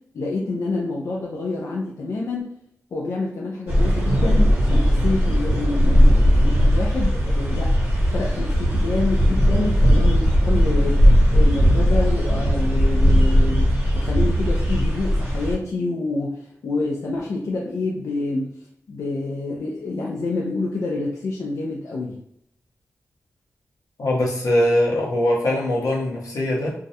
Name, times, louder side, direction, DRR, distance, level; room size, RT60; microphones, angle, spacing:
voice 1, 0.1-2.5 2.9-7.7 8.1-18.5 18.9-22.2, left 2 dB, 60° left, -3 dB, 0.4 m, -27 dB
sound 1, 3.7-15.5, equal, 45° right, 0.9 m, -18 dB
voice 2, 24.0-26.7, left 1 dB, 80° left, -3 dB, 0.7 m, -21 dB
2.3 x 2.0 x 2.7 m, 0.74 s
wide cardioid pair, 160°, 6 cm